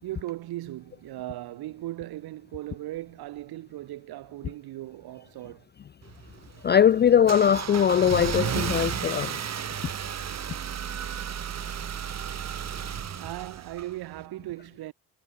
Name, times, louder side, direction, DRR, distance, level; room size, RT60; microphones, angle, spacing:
voice 1, 0.0-5.7 10.3-10.4 13.2-14.9, right 16 dB, 85° right, 5.0 m, -38 dB
Car / Engine starting, 6.0-14.2, right 8 dB, 45° right, 1.7 m, -33 dB
voice 2, 6.6-9.4, left 8 dB, 30° left, 0.4 m, -21 dB
cardioid pair, 85°, 37 cm